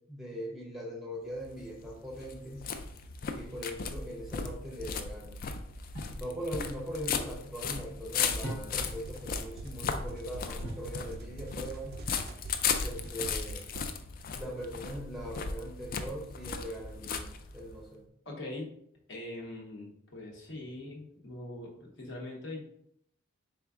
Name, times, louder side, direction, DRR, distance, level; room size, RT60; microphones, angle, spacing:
voice 1, 0.1-2.7 3.3-5.4 6.1-12.0 12.8-13.6 14.3-18.0, equal, ahead, -2 dB, 0.6 m, -41 dB
sound 1, 1.3-17.8, left 6 dB, 45° left, 0.3 m, -36 dB
sound 2, 5.9-6.3 8.4-9.0 10.6-11.0 13.0-13.6, equal, 80° left, 1.3 m, -42 dB
sound 3, 8.7-14.0, right 2 dB, 50° right, 0.3 m, -46 dB
voice 2, 18.2-18.7 19.1-22.6, left 2 dB, 60° left, -1 dB, 0.9 m, -42 dB
4.4 x 3.4 x 2.4 m, 0.73 s
head